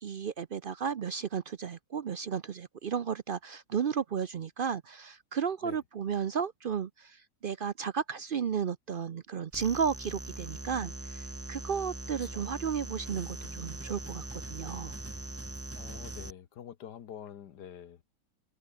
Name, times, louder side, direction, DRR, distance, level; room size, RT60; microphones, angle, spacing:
voice 1, 0.0-14.9, right 7 dB, 70° right, 0.5 m, -33 dB
sound 1, 9.5-16.3, right 2 dB, 10° right, 0.7 m, -41 dB
voice 2, 15.8-18.0, left 9 dB, 75° left, 1.7 m, -46 dB
omnidirectional pair, 1.8 m